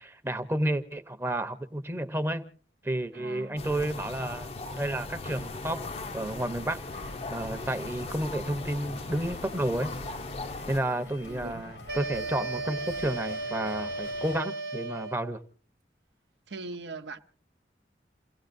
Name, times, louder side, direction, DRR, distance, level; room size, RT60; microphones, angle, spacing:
voice 1, 0.0-2.4 2.8-4.5 4.8-5.8 6.1-9.9 10.7-15.4, right 1 dB, 15° right, 0.8 m, -31 dB
voice 2, 3.1-3.6 10.9-11.6 13.6-13.9 16.5-17.2, right 3 dB, 85° right, 0.9 m, -42 dB
sound 1, 3.6-10.8, left 2 dB, 35° left, 0.6 m, -38 dB
sound 2, 5.2-14.4, left 2 dB, 90° left, 1.9 m, -46 dB
sound 3, 11.9-15.4, right 2 dB, 60° right, 1.1 m, -35 dB
29.0 x 16.5 x 2.6 m
head